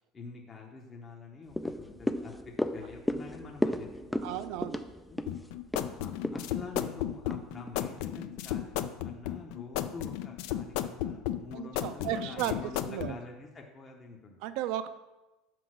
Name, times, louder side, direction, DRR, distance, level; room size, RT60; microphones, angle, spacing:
voice 1, 0.1-4.5 5.1-5.2 6.0-14.4, left 3 dB, 20° left, 0 dB, 0.7 m, -47 dB
sound 1, 1.5-8.0 8.4-8.5, left 1 dB, 5° left, 0.3 m, -35 dB
voice 2, 4.2-4.8 11.5-13.2 14.4-14.9, right 11 dB, 65° right, 12 dB, 0.5 m, -34 dB
sound 2, 5.3-13.1, left 12 dB, 70° left, 0.4 m, -34 dB
6.1 x 5.0 x 6.2 m, 1.1 s
cardioid pair, 150°, 0 cm